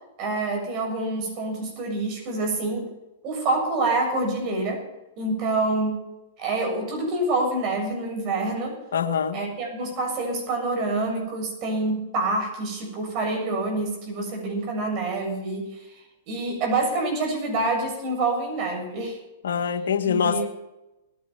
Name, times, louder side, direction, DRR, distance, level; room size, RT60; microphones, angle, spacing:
voice 1, 0.2-2.9 3.2-4.8 5.2-6.1 6.4-8.8 9.3-16.0 16.3-19.2 20.0-20.5, right 2 dB, 40° right, 1 dB, 7.2 m, -27 dB
voice 2, 8.9-9.4 19.4-20.4, left 7 dB, 75° left, 7 dB, 1.6 m, -24 dB
20.5 x 10.0 x 5.8 m, 0.95 s
hypercardioid pair, 115°, 0 cm